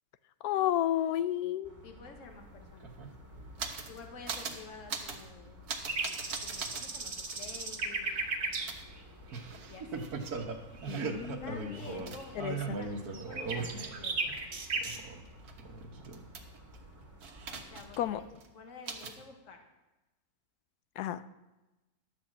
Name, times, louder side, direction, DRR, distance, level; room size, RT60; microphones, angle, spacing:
voice 1, 0.4-1.7 10.9-11.8 12.4-12.8 18.0-18.2 21.0-21.2, left 12 dB, 85° left, 13 dB, 1.1 m, -32 dB
sound 1, 1.6-18.3, equal, 10° right, 1.5 m, -54 dB
voice 2, 1.8-3.3 3.9-5.6 6.4-8.1 9.7-10.0 11.4-14.6 17.5-19.6, left 4 dB, 55° left, 4 dB, 1.6 m, -50 dB
sound 2, 2.3-2.4 2.6-4.0 4.3-4.6 4.9-5.2 5.7-6.8 7.3-7.4 8.7-14.4 14.7-16.8 17.2-18.1 18.4-18.5 18.9-19.2, right 4 dB, 75° right, 1.6 m, -39 dB
sound 3, 5.9-8.7 9.0-9.1 9.3-9.7 10.0-10.1 10.4-10.5 10.8-10.9 11.2-11.3 11.7-11.8 12.2-12.3 12.6-12.8 13.1-15.0, right 3 dB, 55° right, 1.5 m, -36 dB
11.0 x 6.3 x 7.4 m, 1.1 s
omnidirectional pair, 1.6 m